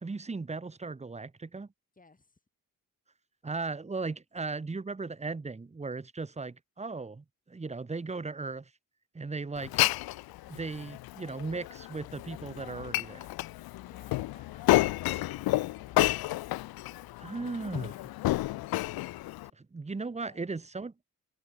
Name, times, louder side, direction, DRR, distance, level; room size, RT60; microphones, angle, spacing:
voice 1, 0.0-1.7 3.4-8.7 9.1-9.8 10.5-13.3 17.2-17.9 19.5-20.9, right 3 dB, 20° right, 1.1 m, -37 dB
voice 2, 1.9-2.4 13.8-16.1 17.1-18.2 20.0-20.5, left 3 dB, 25° left, 7.2 m, -61 dB
Glass, 9.6-19.5, left 17 dB, 90° left, 0.5 m, -31 dB
open air
cardioid pair, 100°, 36 cm